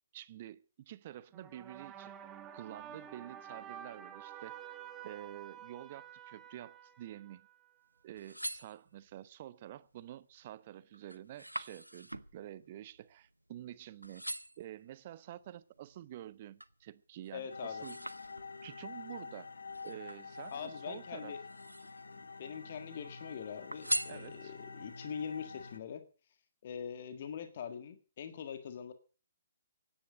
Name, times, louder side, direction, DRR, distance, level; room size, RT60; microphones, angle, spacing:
voice 1, 0.1-2.1 2.5-4.8 5.0-7.4 8.0-14.2 14.6-18.0 18.6-19.5 19.8-21.3 24.1-24.5, right 12 dB, 35° right, 18 dB, 0.8 m, -49 dB
sound 1, 1.3-7.7, right 9 dB, 15° right, 1.4 m, -50 dB
sound 2, 8.0-9.3 9.9-10.3 10.6-13.7 14.0-14.7 15.3-16.8 17.2-18.8 19.7-20.8 21.4-22.2 22.5-23.2 23.7-24.8 25.3-25.4, right 1 dB, 85° right, 0.8 m, -42 dB
voice 2, 17.3-17.8 20.5-21.4 22.1-26.0 26.6-28.9, left 7 dB, 45° left, 10 dB, 1.6 m, -43 dB
sound 3, 17.5-25.8, left 4 dB, 65° left, 1.6 m, -48 dB
16.5 x 10.0 x 6.5 m, 0.37 s
figure-of-eight pair, 130°, 0 cm